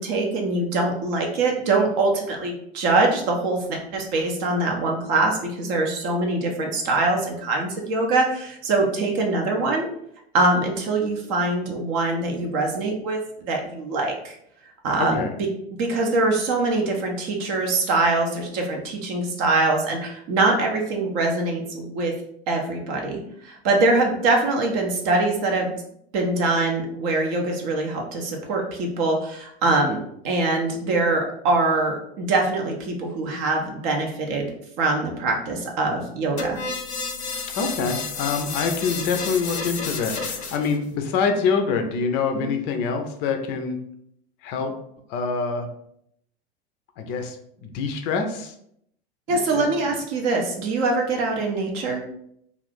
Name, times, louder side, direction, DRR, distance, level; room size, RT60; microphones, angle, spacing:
voice 1, 0.0-9.9 10.3-14.4 14.8-15.2 15.7-22.1 22.5-25.7 26.1-34.5 34.8-36.6 42.3-42.5 49.3-52.0, right 2 dB, 40° right, 1 dB, 0.6 m, -23 dB
voice 2, 15.0-15.3 37.5-43.8 44.4-44.7 45.1-45.7 47.0-47.4 47.6-48.5 49.3-49.7, left 5 dB, 30° left, 5 dB, 0.4 m, -25 dB
sound 1, 36.4-40.8, left 4 dB, 85° left, 0.5 m, -31 dB
2.4 x 2.4 x 3.4 m, 0.72 s
figure-of-eight pair, 85°, 32 cm